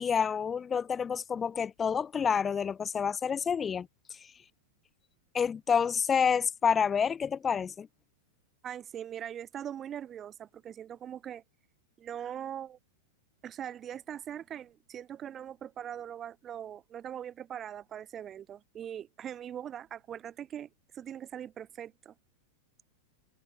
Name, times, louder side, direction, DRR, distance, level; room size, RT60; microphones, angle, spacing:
voice 1, 0.0-3.9 5.3-7.9, left 7 dB, 20° left, 0.4 m, -28 dB
voice 2, 8.6-11.4 12.0-12.8 13.4-20.7 20.9-22.1, right 9 dB, 30° right, 0.8 m, -41 dB
hypercardioid pair, 115°, 0 cm